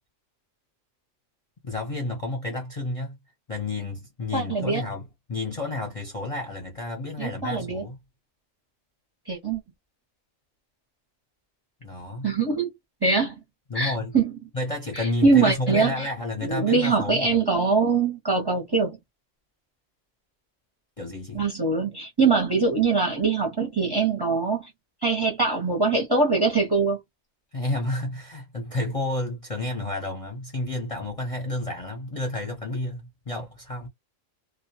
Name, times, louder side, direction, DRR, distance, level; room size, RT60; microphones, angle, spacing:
voice 1, 1.6-3.2 3.5-8.0 11.8-12.3 13.7-14.1 14.5-17.4 21.0-21.4 27.5-33.9, left 2 dB, 35° left, 0.7 m, -31 dB
voice 2, 4.3-4.8 7.2-7.9 9.3-9.6 12.2-12.7 13.0-13.4 13.7-14.3 14.9-16.1 16.4-19.0 21.3-24.7 25.0-27.0, right 4 dB, 20° right, 0.7 m, -23 dB
2.3 x 2.2 x 2.7 m
omnidirectional pair, 1.3 m